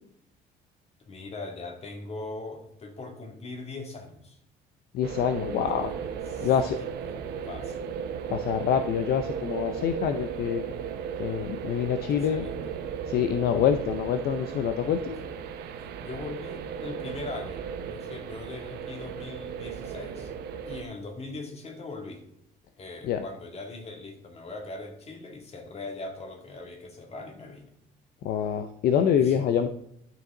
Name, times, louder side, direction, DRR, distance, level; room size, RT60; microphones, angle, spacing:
voice 1, 1.1-4.4 5.8-5.9 6.3-7.8 12.1-12.5 16.0-20.3 20.7-22.2 22.8-27.7 29.2-29.5, left 3 dB, 40° left, 3 dB, 2.3 m, -40 dB
voice 2, 4.9-5.9 6.4-6.8 8.3-10.6 11.2-12.5 13.1-15.2 23.1-23.2 28.2-29.7, left 8 dB, 65° left, 9 dB, 0.6 m, -26 dB
sound 1, 5.0-20.8, right 7 dB, 70° right, 0.9 m, -36 dB
12.0 x 6.1 x 3.8 m, 0.76 s
cardioid pair, 110°, 17 cm